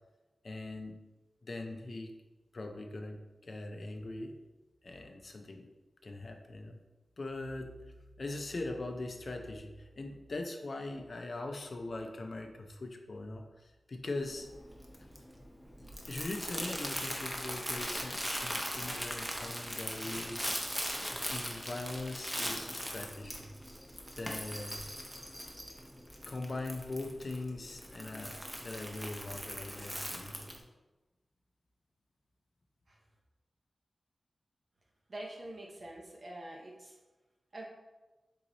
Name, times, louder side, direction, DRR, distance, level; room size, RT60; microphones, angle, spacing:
voice 1, 0.4-1.0 1.4-2.2 2.5-3.2 3.4-4.3 4.8-5.7 6.0-6.8 7.2-7.7 8.2-14.5 16.1-20.5 21.1-23.4 24.1-24.8 26.3-30.3, left 2 dB, 55° left, 4 dB, 0.4 m, -41 dB
Crumpling crinkling, 14.2-30.6, equal, 5° right, 0.7 m, -40 dB
voice 2, 35.1-37.0 37.5-37.6, right 1 dB, 50° right, -1 dB, 0.7 m, -45 dB
3.8 x 3.0 x 3.9 m, 1.1 s
wide cardioid pair, 75°, 0 cm